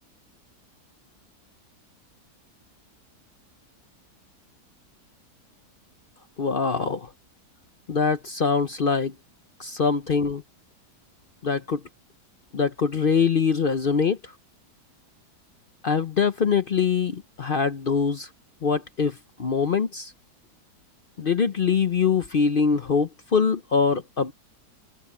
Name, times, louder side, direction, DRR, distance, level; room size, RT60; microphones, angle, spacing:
voice 1, 6.4-7.1 7.9-9.1 9.6-10.4 11.4-11.8 12.5-14.2 15.8-18.3 18.6-20.1 21.2-24.3, left 5 dB, 50° left, 0.7 m, -23 dB
omnidirectional pair, 1.7 m